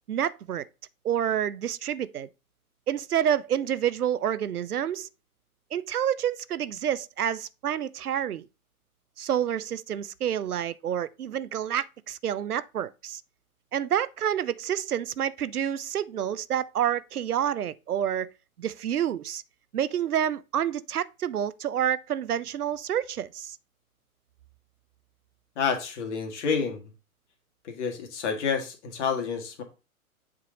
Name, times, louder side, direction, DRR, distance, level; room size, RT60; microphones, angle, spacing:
voice 1, 0.1-0.6 1.0-2.3 2.9-5.1 5.7-8.4 9.2-13.2 13.7-18.3 18.6-19.4 19.7-23.6, right 10 dB, 85° right, 0.6 m, -28 dB
voice 2, 25.6-26.8 27.6-29.6, left 6 dB, 50° left, 1.9 m, -29 dB
7.6 x 4.0 x 3.8 m
figure-of-eight pair, 120°, 44 cm